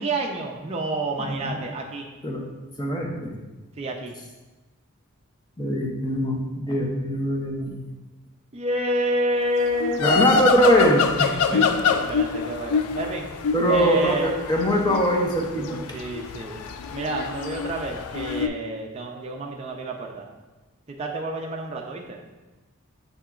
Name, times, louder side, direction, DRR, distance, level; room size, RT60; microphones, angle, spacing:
voice 1, 0.0-2.1 3.8-4.2 8.5-10.4 11.2-13.3 13.7-14.3 15.9-16.6 16.9-20.3 20.9-22.2, right 1 dB, 30° right, 0 dB, 0.4 m, -29 dB
voice 2, 1.2-1.6 2.2-2.4 2.8-3.3 5.6-7.8 10.0-11.6 13.5-15.8, equal, 20° left, 0 dB, 0.6 m, -22 dB
sound 1, 9.6-18.5, left 6 dB, 90° left, 0.3 m, -26 dB
7.9 x 2.8 x 2.3 m, 1.1 s
head